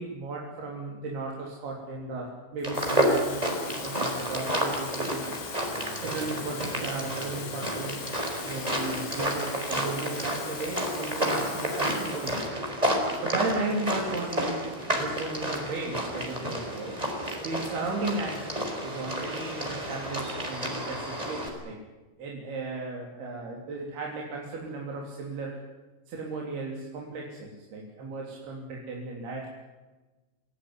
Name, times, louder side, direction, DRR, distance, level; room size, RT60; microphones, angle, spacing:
voice 1, 0.0-3.4 3.7-5.3 6.0-8.0 8.4-12.4 13.2-17.0 17.4-21.8 22.2-25.6 26.1-29.5, right 3 dB, 55° right, -1 dB, 5.0 m, -35 dB
Water tap faucet / Fill (with liquid), 2.6-12.5 12.9-13.1, left 8 dB, 85° left, 5.6 m, -42 dB
sound 1, 2.6-21.5, equal, 10° right, 4.3 m, -31 dB
28.0 x 17.5 x 9.9 m, 1.2 s
omnidirectional pair, 5.9 m